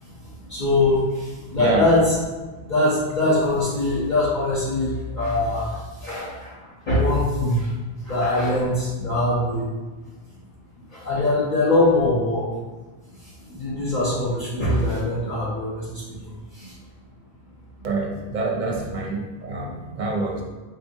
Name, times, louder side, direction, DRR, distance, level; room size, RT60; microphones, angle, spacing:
voice 1, 0.0-2.2 2.7-7.7 8.0-9.7 10.9-12.5 13.2-16.7 18.7-18.9, left 2 dB, 50° left, -9 dB, 0.8 m, -23 dB
voice 2, 1.5-1.8 17.8-20.4, right 3 dB, 55° right, -1 dB, 0.6 m, -26 dB
3.9 x 2.9 x 2.6 m, 1.2 s
omnidirectional pair, 1.1 m